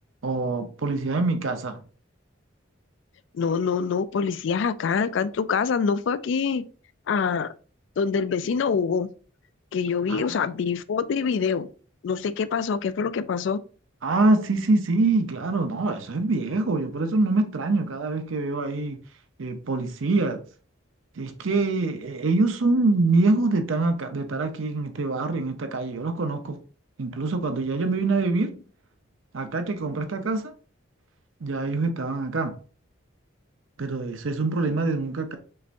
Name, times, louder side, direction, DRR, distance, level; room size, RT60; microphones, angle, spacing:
voice 1, 0.2-1.8 10.1-10.4 14.0-19.0 19.4-20.4 21.1-26.6 27.0-28.5 29.3-30.5 31.4-32.5 33.8-35.4, right 3 dB, 80° right, 0.7 m, -25 dB
voice 2, 3.3-6.6 7.1-7.5 8.0-9.1 9.7-11.7 12.0-13.6, left 6 dB, 65° left, 0.3 m, -25 dB
5.5 x 3.3 x 2.5 m
head